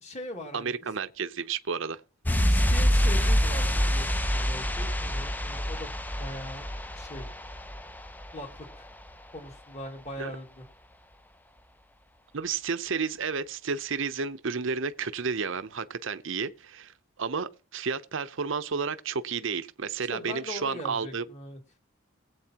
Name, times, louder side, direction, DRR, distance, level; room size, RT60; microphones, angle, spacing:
voice 1, 0.0-0.8 2.4-5.9 6.2-6.7 6.9-7.3 8.3-8.9 9.3-10.7 20.1-21.6, left 1 dB, 35° left, 2.3 m, -40 dB
voice 2, 0.5-2.0 10.2-10.3 12.3-16.9 17.2-21.2, right 5 dB, 60° right, 0.7 m, -31 dB
sound 1, 2.3-8.8 9.0-9.1, equal, 10° left, 0.5 m, -26 dB
21.0 x 8.3 x 2.9 m
head